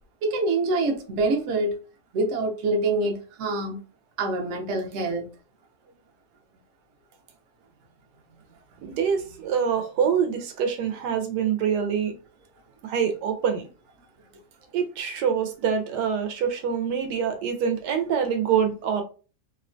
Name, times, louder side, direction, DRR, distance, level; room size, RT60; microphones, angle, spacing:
voice 1, 0.2-1.7 2.1-3.8 4.2-5.3, right 2 dB, 60° right, 0.9 m, -25 dB
voice 2, 8.8-12.1 12.8-13.7 14.7-19.0, right 7 dB, 80° right, 1.2 m, -25 dB
2.9 x 2.2 x 2.4 m
omnidirectional pair, 1.8 m